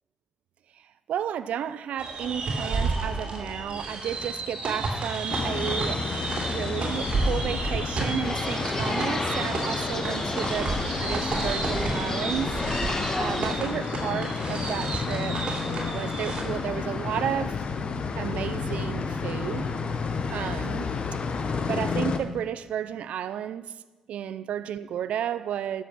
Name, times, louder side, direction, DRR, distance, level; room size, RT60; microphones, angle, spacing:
voice 1, 1.1-6.0 6.3-12.6 13.2-15.4 15.9-17.6 18.2-19.7 20.3-20.9 21.7-23.7 24.1-25.8, right 9 dB, 90° right, 0.4 m, -32 dB
sound 1, 2.0-16.4, right 3 dB, 60° right, 2.6 m, -31 dB
sound 2, 5.3-22.2, left 5 dB, 55° left, 0.8 m, -31 dB
sound 3, 8.2-13.5, left 2 dB, 30° left, 1.3 m, -32 dB
11.0 x 7.3 x 6.0 m
cardioid pair, 90°, 2 cm